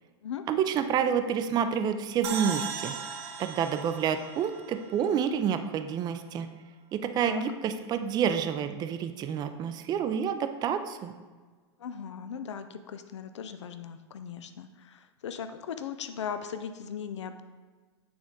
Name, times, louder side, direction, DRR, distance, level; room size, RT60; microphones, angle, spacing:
voice 1, 0.5-2.9 3.4-6.5 6.9-11.1, right 8 dB, 30° right, 9 dB, 0.4 m, -28 dB
sound 1, 2.2-5.5, right 6 dB, 65° right, 0.8 m, -38 dB
voice 2, 11.8-17.4, left 7 dB, 80° left, 9 dB, 0.4 m, -38 dB
8.7 x 3.4 x 3.7 m, 1.4 s
hypercardioid pair, 100°, 15 cm